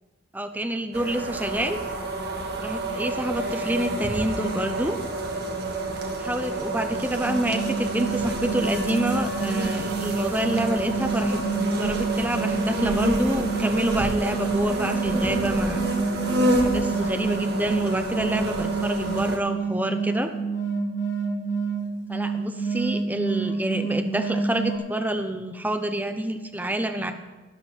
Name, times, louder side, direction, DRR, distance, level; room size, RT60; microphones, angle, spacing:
voice 1, 0.3-1.8 2.6-5.0 6.1-11.4 11.8-15.8 16.6-20.3 22.1-27.1, right 1 dB, 10° right, 6 dB, 0.8 m, -27 dB
sound 1, 0.9-19.4, right 1 dB, 55° right, 1.8 m, -29 dB
sound 2, 7.3-24.8, right 4 dB, 75° left, 1.8 m, -28 dB
13.0 x 11.0 x 4.6 m, 1.2 s
head